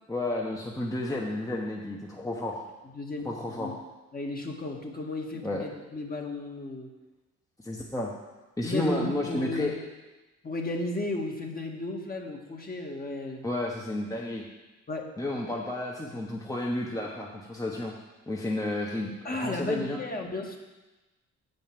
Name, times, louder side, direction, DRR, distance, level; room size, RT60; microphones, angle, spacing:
voice 1, 0.1-2.7 3.2-3.8 5.4-5.6 7.6-8.1 8.6-9.7 13.4-14.5 15.2-17.9 18.3-20.0, left 1 dB, 10° left, -2 dB, 1.1 m, -31 dB
voice 2, 2.9-3.3 3.5-3.8 4.1-6.9 8.6-9.7 10.4-13.4 14.9-15.1 19.2-20.6, left 2 dB, 30° left, 1 dB, 1.6 m, -34 dB
8.4 x 5.3 x 7.6 m, 1.1 s
cardioid pair, 90°, 30 cm